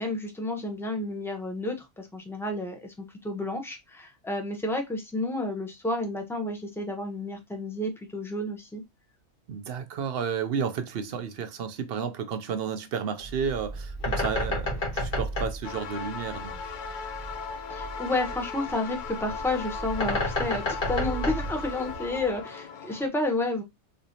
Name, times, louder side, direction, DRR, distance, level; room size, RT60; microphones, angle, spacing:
voice 1, 0.0-2.9 3.2-8.8 17.7-23.6, left 2 dB, 5° left, 0.4 m, -31 dB
voice 2, 9.5-16.7, right 7 dB, 65° right, 0.6 m, -32 dB
Bird, 13.2-22.4, left 1 dB, 45° left, 1.4 m, -32 dB
sound 1, 15.6-23.1, left 5 dB, 80° left, 0.4 m, -37 dB
3.5 x 3.2 x 2.6 m
omnidirectional pair, 1.4 m